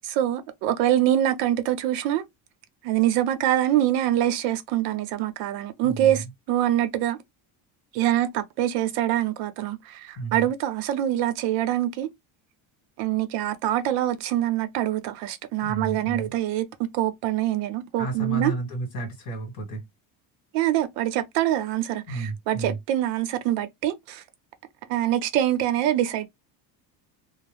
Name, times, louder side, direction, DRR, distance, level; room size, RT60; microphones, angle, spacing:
voice 1, 0.0-2.2 2.8-7.2 7.9-12.1 13.0-16.7 16.9-18.5 20.5-24.2 24.9-26.3, right 12 dB, 70° right, 0.7 m, -24 dB
voice 2, 5.8-6.3 10.2-10.5 15.6-16.3 18.0-19.8 22.1-22.8, right 3 dB, 40° left, 1.6 m, -32 dB
2.6 x 2.0 x 3.3 m
cardioid pair, 180°, 44 cm